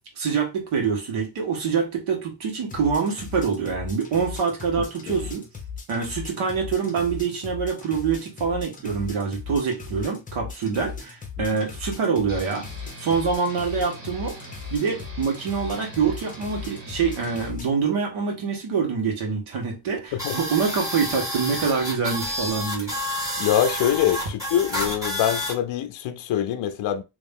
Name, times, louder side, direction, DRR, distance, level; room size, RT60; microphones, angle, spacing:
voice 1, 0.2-5.5 5.9-12.6 13.0-14.4 14.7-22.9, right 5 dB, 75° right, 1.7 m, -25 dB
sound 1, 2.7-17.7, left 6 dB, 15° left, 0.7 m, -38 dB
sound 2, 12.3-17.6, right 1 dB, 45° right, 1.3 m, -42 dB
sound 3, 20.2-25.5, left 1 dB, 5° right, 1.6 m, -29 dB
voice 2, 23.4-27.0, left 10 dB, 60° left, 0.5 m, -24 dB
3.0 x 2.8 x 3.6 m
cardioid pair, 175°, 49 cm